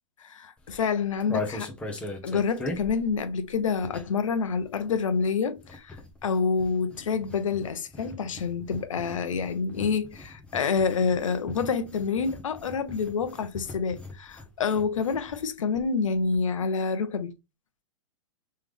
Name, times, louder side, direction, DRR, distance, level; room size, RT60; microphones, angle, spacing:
voice 1, 0.2-1.7 2.2-6.0 6.2-17.3, left 5 dB, 90° left, 0.8 m, -27 dB
sound 1, 0.6-4.3 4.6-15.5 15.8-15.9 16.1-16.4, left 3 dB, 5° left, 0.9 m, -40 dB
3.4 x 3.3 x 3.6 m
hypercardioid pair, 145°, 16 cm